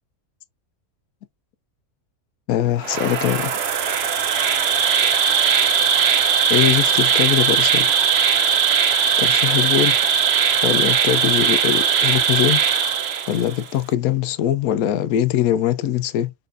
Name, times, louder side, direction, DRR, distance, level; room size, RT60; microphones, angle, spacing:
voice 1, 2.5-3.5 6.5-7.9 9.2-10.0 10.6-12.6 13.3-16.3, left 11 dB, 80° left, 1.0 m, -21 dB
Insect, 2.8-13.6, right 7 dB, 55° right, 0.8 m, -19 dB
4.2 x 4.1 x 2.6 m
omnidirectional pair, 1.5 m